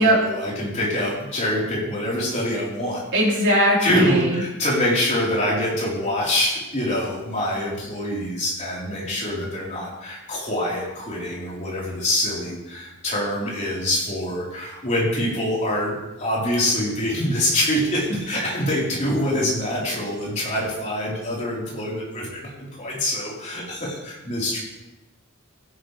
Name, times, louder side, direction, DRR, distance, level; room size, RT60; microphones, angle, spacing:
voice 1, 0.0-3.0 3.8-22.5 22.8-24.6, left 1 dB, 35° left, -6 dB, 4.1 m, -25 dB
voice 2, 3.1-4.4, equal, 55° right, -5 dB, 4.1 m, -19 dB
16.0 x 9.9 x 3.4 m, 1.0 s
head